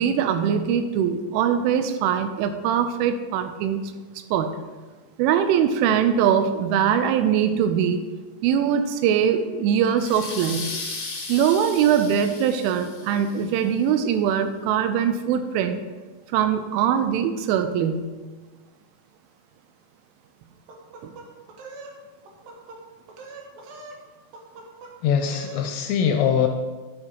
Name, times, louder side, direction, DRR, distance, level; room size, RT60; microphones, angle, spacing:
voice 1, 0.0-3.8 4.3-4.5 5.2-8.0 8.4-10.7 11.3-15.8 16.3-18.1 21.0-21.1, right 8 dB, 90° right, 9 dB, 3.2 m, -22 dB
sound 1, 10.0-13.4, left 3 dB, 65° left, 1.5 m, -35 dB
sound 2, 20.7-22.0 22.3-22.8 23.1-24.0 24.3-24.9 25.2-25.7, right 3 dB, 70° right, 2.3 m, -42 dB
voice 2, 25.0-26.5, left 8 dB, 85° left, 4 dB, 2.7 m, -22 dB
10.5 x 10.0 x 3.0 m, 1.3 s
omnidirectional pair, 5.5 m